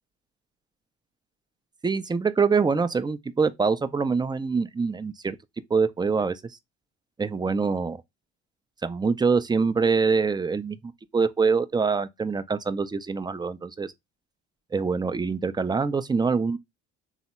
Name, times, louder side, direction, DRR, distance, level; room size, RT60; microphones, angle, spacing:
voice 1, 1.8-5.4 5.7-6.4 7.2-8.0 8.8-13.9 14.7-16.6, right 5 dB, 15° right, 0.4 m, -24 dB
3.5 x 2.1 x 4.1 m
hypercardioid pair, 65°, 32 cm